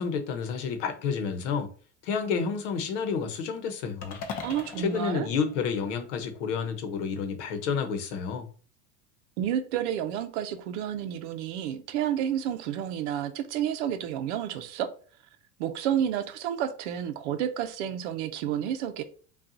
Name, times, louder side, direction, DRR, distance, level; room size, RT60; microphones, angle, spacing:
voice 1, 0.0-1.7 2.0-4.2 4.8-8.5, left 6 dB, 80° left, 0.9 m, -30 dB
sound 1, 4.0-6.3, left 6 dB, 25° left, 0.4 m, -41 dB
voice 2, 4.4-5.3 9.4-14.9 15.6-19.0, right 10 dB, 70° right, 0.7 m, -30 dB
5.5 x 2.4 x 2.6 m
cardioid pair, 170°, 36 cm